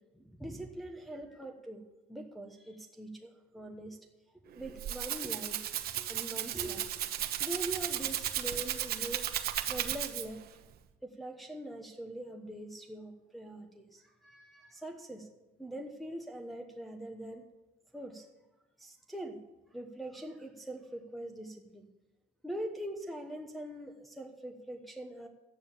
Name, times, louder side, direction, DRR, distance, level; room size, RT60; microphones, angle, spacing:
voice 1, 0.1-1.8 2.1-4.0 4.4-5.6 6.0-6.9 7.4-9.3 9.7-10.4 11.0-15.3 15.6-17.4 17.9-18.3 18.8-19.4 19.7-21.9 22.4-25.3, right 1 dB, ahead, 1 dB, 1.2 m, -43 dB
Rattle (instrument), 4.5-10.5, right 11 dB, 65° right, 1.1 m, -35 dB
13.0 x 9.4 x 7.3 m, 1.1 s
cardioid pair, 110°, 17 cm